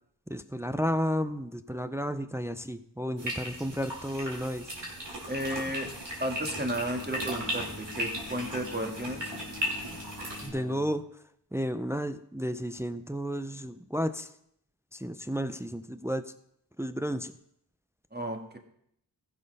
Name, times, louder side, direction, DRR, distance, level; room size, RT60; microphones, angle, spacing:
voice 1, 0.3-4.7 10.4-11.1 11.5-14.3 14.9-16.3 16.8-17.3, equal, 5° right, 11 dB, 0.5 m, -32 dB
sound 1, 3.2-10.5, equal, 85° right, 2.8 m, -37 dB
voice 2, 5.3-5.9 6.2-9.3 18.1-18.6, right 1 dB, 25° right, 3 dB, 1.7 m, -33 dB
Bowed string instrument, 6.2-11.1, left 4 dB, 35° left, 0.9 m, -47 dB
15.0 x 5.5 x 5.4 m, 0.72 s
wide cardioid pair, 40°, 42 cm